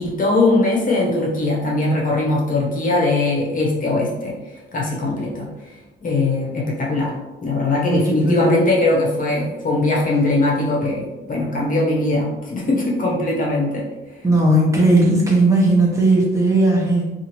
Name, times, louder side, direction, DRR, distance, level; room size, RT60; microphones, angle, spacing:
voice 1, 0.0-4.3 4.7-5.5 6.0-13.8, left 2 dB, 45° left, -3 dB, 0.9 m, -20 dB
voice 2, 7.9-8.5 14.2-17.1, right 2 dB, 15° right, -4 dB, 0.9 m, -16 dB
2.7 x 2.5 x 2.9 m, 1.1 s
cardioid pair, 90°, 20 cm